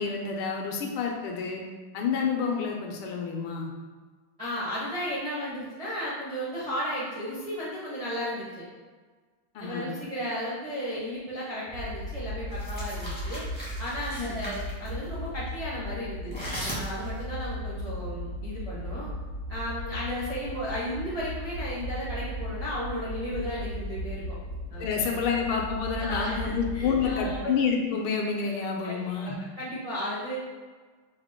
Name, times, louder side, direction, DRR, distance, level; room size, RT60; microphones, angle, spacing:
voice 1, 0.0-1.6 1.9-3.7 9.5-9.9 14.2-14.4 24.8-29.3, left 5 dB, 80° left, 0 dB, 1.4 m, -29 dB
voice 2, 4.4-8.6 9.6-19.1 19.5-24.3 24.7-24.8 25.1-25.2 26.0-27.4 28.8-29.3 29.6-30.4, equal, 65° right, -9 dB, 0.3 m, -34 dB
sound 1, 11.7-27.4, equal, 90° right, 0.9 m, -36 dB
sound 2, 12.5-14.9 16.3-17.2, equal, 10° left, 0.4 m, -38 dB
4.9 x 2.1 x 3.6 m, 1.4 s
omnidirectional pair, 2.4 m